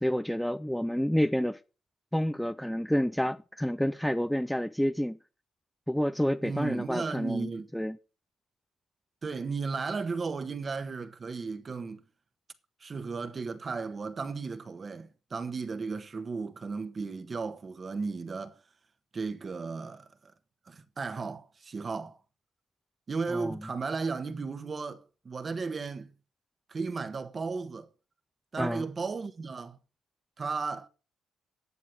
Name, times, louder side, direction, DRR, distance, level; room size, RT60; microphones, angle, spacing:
voice 1, 0.0-1.6 2.1-5.2 5.9-8.0 23.3-23.6 28.6-28.8, equal, 5° left, 0.5 m, -29 dB
voice 2, 6.4-7.7 9.2-12.0 12.8-18.6 19.1-20.1 20.7-22.2 23.1-26.1 26.7-27.9 28.5-29.8 30.4-30.9, right 4 dB, 35° right, 1.4 m, -35 dB
11.0 x 7.4 x 6.3 m
cardioid pair, 90°, 0 cm